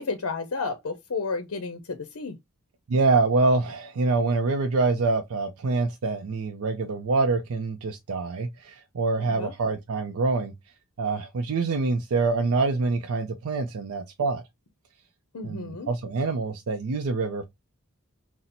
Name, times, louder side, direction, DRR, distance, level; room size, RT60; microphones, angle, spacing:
voice 1, 0.0-2.4 9.2-9.5 15.3-15.9, left 4 dB, 70° left, 0.5 m, -32 dB
voice 2, 2.9-10.5 11.0-14.4 15.4-17.4, right 3 dB, 70° right, 0.4 m, -25 dB
4.1 x 2.0 x 2.5 m
head